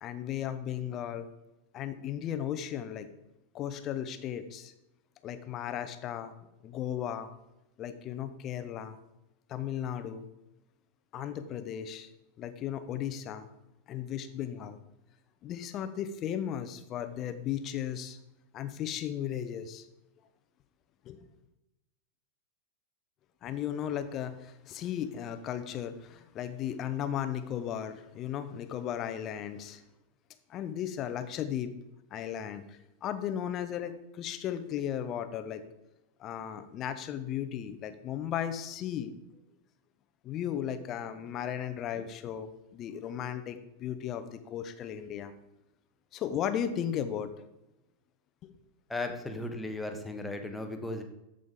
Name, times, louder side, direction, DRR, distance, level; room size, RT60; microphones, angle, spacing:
voice 1, 0.0-1.3 1.7-3.1 3.5-4.7 5.2-6.3 6.6-7.3 7.8-9.0 9.5-10.2 11.1-12.1 12.4-13.5 13.9-14.8 15.4-18.2 18.5-19.9 21.0-21.2 23.4-29.8 30.5-31.7 32.1-35.6 36.2-39.1 40.2-45.3 46.1-47.3 48.4-48.5, left 10 dB, 35° left, 10 dB, 0.9 m, -35 dB
voice 2, 48.9-51.0, left 2 dB, 5° left, 4 dB, 1.2 m, -36 dB
13.5 x 5.3 x 3.7 m, 0.94 s
figure-of-eight pair, 90°, 0 cm